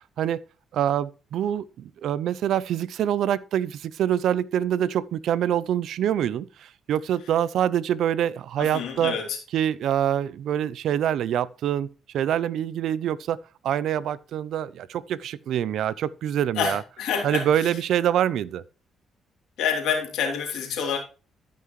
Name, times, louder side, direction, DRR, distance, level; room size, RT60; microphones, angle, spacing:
voice 1, 0.7-9.2 9.5-11.9 12.1-13.4 13.6-16.8 17.2-18.6, right 10 dB, 75° right, 0.4 m, -25 dB
voice 2, 8.6-9.4 16.5-17.4 19.6-21.0, left 7 dB, 80° left, 3.1 m, -27 dB
13.0 x 5.7 x 3.1 m
cardioid pair, 90°, 0 cm